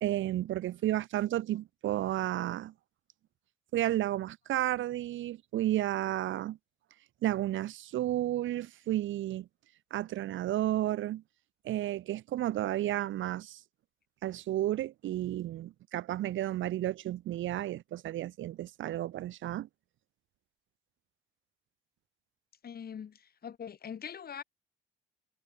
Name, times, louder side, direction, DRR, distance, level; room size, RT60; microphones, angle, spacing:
voice 1, 0.0-2.7 3.7-6.6 7.2-9.5 9.9-11.2 11.6-13.6 14.2-19.7, right 14 dB, 75° right, 1.2 m, -32 dB
voice 2, 22.6-24.4, left 8 dB, 50° left, 2.5 m, -43 dB
cardioid pair, 90°, 20 cm